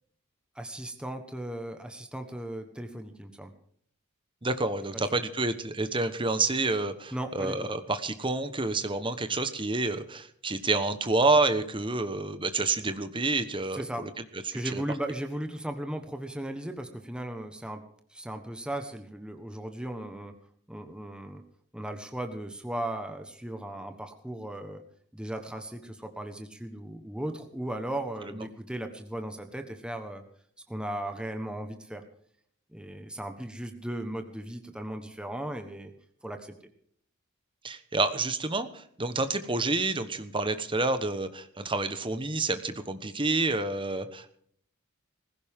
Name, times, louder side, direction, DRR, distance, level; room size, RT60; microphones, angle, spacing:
voice 1, 0.5-3.5 5.1-5.2 7.1-7.7 13.7-14.0 14.5-17.8 18.1-20.3 20.7-21.4 21.7-24.8 25.1-30.2 30.7-32.0 32.7-35.9 36.2-36.5, right 1 dB, 5° right, 5 dB, 1.3 m, -37 dB
voice 2, 4.4-14.1 14.5-14.8 28.2-28.4 37.6-44.4, right 3 dB, 25° right, 10 dB, 1.2 m, -28 dB
19.5 x 16.0 x 3.7 m, 0.63 s
head